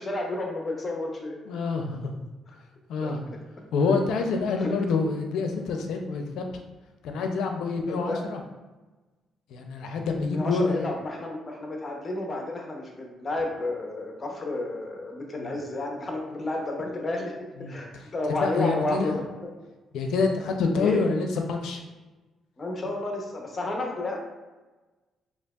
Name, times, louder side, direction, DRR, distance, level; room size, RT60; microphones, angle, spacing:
voice 1, 0.0-1.3 3.0-3.4 4.6-4.7 7.9-8.2 10.3-17.3 17.7-19.2 20.8-21.0 22.6-24.2, left 2 dB, 30° left, 1 dB, 0.9 m, -31 dB
voice 2, 1.5-2.0 2.9-3.2 3.7-6.5 7.0-8.4 9.5-10.9 15.4-15.6 17.6-17.8 18.3-19.2 19.9-21.8, left 4 dB, 80° left, 4 dB, 0.5 m, -27 dB
4.4 x 2.8 x 2.4 m, 1.2 s
cardioid pair, 90°, 0 cm